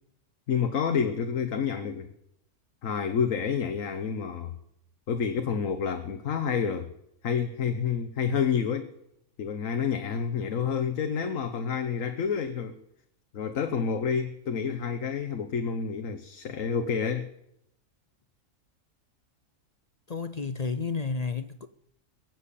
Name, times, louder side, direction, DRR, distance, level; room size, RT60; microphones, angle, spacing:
voice 1, 0.5-2.1 2.8-4.5 5.1-6.9 7.2-8.9 9.4-12.8 13.3-17.3, left 6 dB, 80° left, 1.4 m, -29 dB
voice 2, 20.1-21.7, left 4 dB, 45° left, 0.6 m, -31 dB
22.0 x 7.7 x 8.4 m
omnidirectional pair, 1.4 m